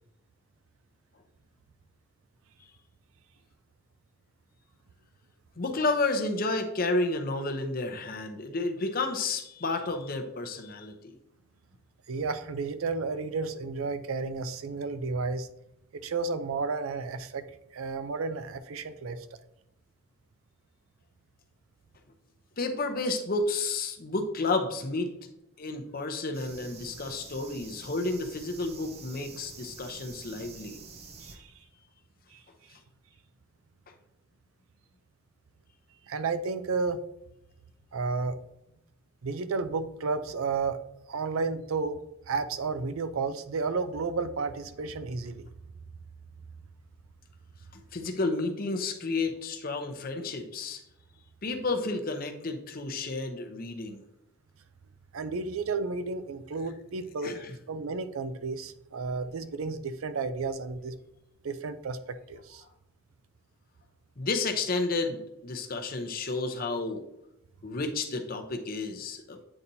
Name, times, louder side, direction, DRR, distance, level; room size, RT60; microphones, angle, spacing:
voice 1, 5.6-11.1 22.6-25.1 25.6-30.8 47.7-50.8 51.4-54.0 57.2-57.5 64.2-67.0 67.6-69.4, left 3 dB, 45° left, 5 dB, 0.7 m, -31 dB
voice 2, 12.1-15.5 15.9-17.4 17.7-19.3 31.2-31.5 32.3-32.4 36.1-37.0 37.9-38.4 39.2-40.8 41.1-42.0 42.3-45.4 55.1-60.9 61.4-62.0 62.3-62.6, right 4 dB, 75° right, 11 dB, 0.5 m, -32 dB
sound 1, 26.3-31.4, right 4 dB, 30° right, 0.6 m, -47 dB
8.8 x 4.1 x 2.7 m, 0.82 s
head